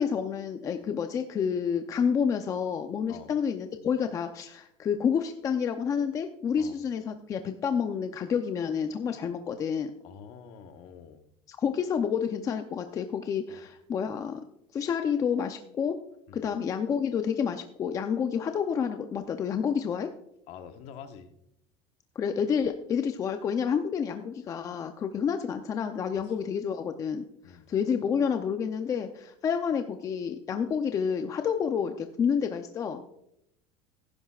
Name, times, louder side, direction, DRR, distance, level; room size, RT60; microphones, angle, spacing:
voice 1, 0.0-9.9 11.5-14.4 14.7-16.0 16.3-20.1 22.2-33.0, left 7 dB, 25° left, 7 dB, 0.6 m, -29 dB
voice 2, 10.0-11.2 13.5-13.6 16.3-16.5 20.5-21.3 26.1-26.2 27.4-27.7, left 8 dB, 55° left, 7 dB, 1.2 m, -46 dB
17.0 x 10.5 x 2.4 m, 0.77 s
cardioid pair, 155°, 13 cm